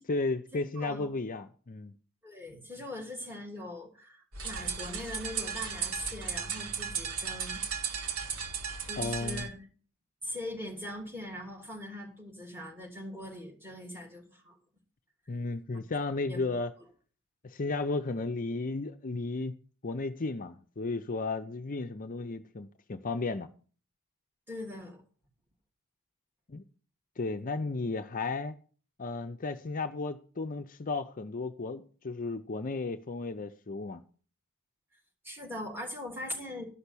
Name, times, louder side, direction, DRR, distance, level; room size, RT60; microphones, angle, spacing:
voice 1, 0.0-1.9 9.0-9.5 15.3-16.7 17.4-19.5 19.8-23.5 26.5-26.6 27.2-28.6 29.0-34.0, left 3 dB, 40° left, 0.6 m, -34 dB
voice 2, 0.5-1.1 2.2-7.6 8.0-8.3 8.8-9.7 10.2-14.6 16.3-16.6 24.5-25.0 35.2-36.6, left 1 dB, 10° right, 3.0 m, -41 dB
sound 1, 4.3-9.5, right 6 dB, 80° right, 2.0 m, -35 dB
12.5 x 5.9 x 8.3 m
head